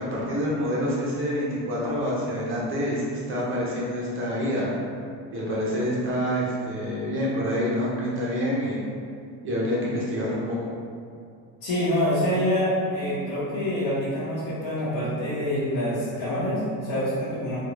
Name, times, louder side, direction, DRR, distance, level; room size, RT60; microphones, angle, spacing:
voice 1, 0.0-4.7 5.3-8.8 9.4-10.7, equal, 35° right, -6 dB, 0.6 m, -27 dB
voice 2, 11.6-17.6, equal, 75° left, -11 dB, 1.0 m, -26 dB
3.6 x 2.3 x 3.0 m, 2.3 s
cardioid pair, 165°, 38 cm